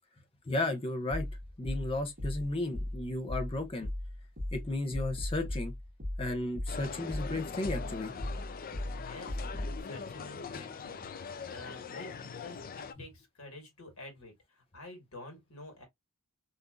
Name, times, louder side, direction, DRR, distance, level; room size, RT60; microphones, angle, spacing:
voice 1, 0.5-1.3 1.6-3.9 4.5-5.7 6.2-8.1, left 2 dB, 25° left, 0.8 m, -34 dB
sound 1, 1.1-9.8, left 1 dB, 35° right, 1.7 m, -38 dB
sound 2, 6.7-12.9, left 6 dB, 40° left, 0.4 m, -42 dB
voice 2, 8.9-9.4 9.8-15.8, left 2 dB, 65° left, 1.5 m, -49 dB
3.5 x 2.7 x 2.4 m
head